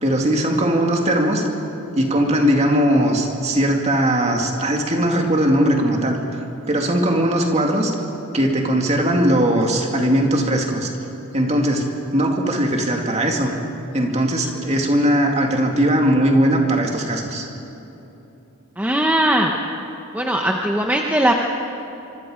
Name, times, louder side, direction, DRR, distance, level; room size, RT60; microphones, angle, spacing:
voice 1, 0.0-1.4 2.0-6.2 6.7-7.9 8.3-10.9 11.3-11.9 12.1-13.5 13.9-17.5, right 1 dB, 30° right, 1 dB, 2.4 m, -19 dB
voice 2, 18.8-19.5 20.1-21.3, right 1 dB, 5° right, 1 dB, 0.9 m, -19 dB
25.5 x 25.0 x 5.1 m, 3.0 s
head